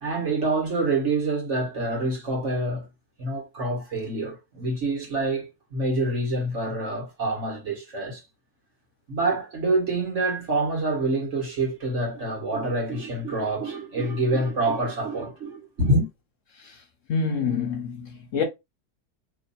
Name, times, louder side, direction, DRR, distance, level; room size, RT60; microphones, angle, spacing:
voice 1, 0.0-2.9 3.2-8.2 9.1-16.1, right 2 dB, 50° right, 1.7 m, -26 dB
voice 2, 17.1-18.4, left 5 dB, 60° left, 1.1 m, -27 dB
3.1 x 2.7 x 4.0 m
omnidirectional pair, 1.7 m